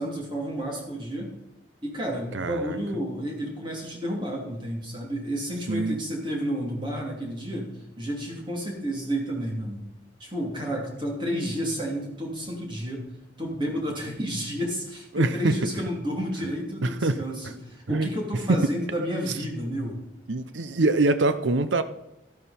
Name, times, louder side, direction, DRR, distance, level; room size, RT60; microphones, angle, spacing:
voice 1, 0.0-1.3 1.8-7.7 8.0-9.8 10.2-13.1 13.4-20.0, equal, 25° right, -1 dB, 3.0 m, -31 dB
voice 2, 2.3-2.8 5.7-6.0 15.1-15.6 16.8-17.5 17.9-18.1 18.5-18.6 20.3-21.8, right 2 dB, 85° right, 12 dB, 0.7 m, -24 dB
13.0 x 12.0 x 4.3 m, 0.91 s
head